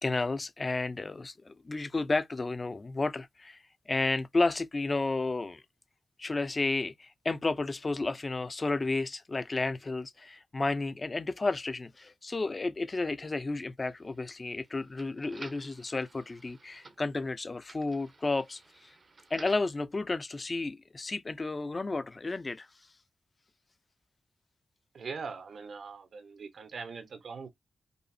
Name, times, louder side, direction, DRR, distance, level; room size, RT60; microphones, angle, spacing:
voice 1, 0.0-5.6 6.2-18.9 19.3-22.7, left 3 dB, 30° left, 0.6 m, -32 dB
sound 1, 13.9-19.8, right 3 dB, 45° right, 0.8 m, -54 dB
voice 2, 24.9-27.5, right 5 dB, 75° right, 1.2 m, -41 dB
5.4 x 2.0 x 4.2 m
wide cardioid pair, 115°, 0 cm